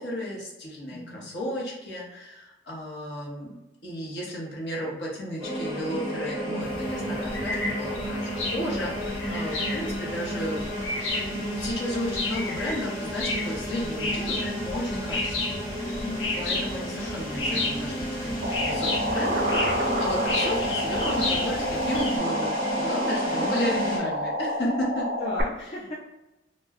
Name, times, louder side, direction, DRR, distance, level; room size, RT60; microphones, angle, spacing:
voice 1, 0.0-3.5 3.8-16.0 16.4-25.1, equal, 65° left, -4 dB, 0.9 m, -34 dB
voice 2, 0.9-1.3 9.7-9.9 16.0-16.4 23.3-23.5 25.2-26.0, left 2 dB, 35° left, -5 dB, 0.4 m, -36 dB
sound 1, 5.4-24.0, equal, 5° left, 1.1 m, -32 dB
sound 2, 6.6-22.2, left 2 dB, 90° left, 0.5 m, -33 dB
sound 3, 18.4-25.4, equal, 50° right, 0.4 m, -28 dB
2.3 x 2.1 x 3.4 m, 0.97 s
head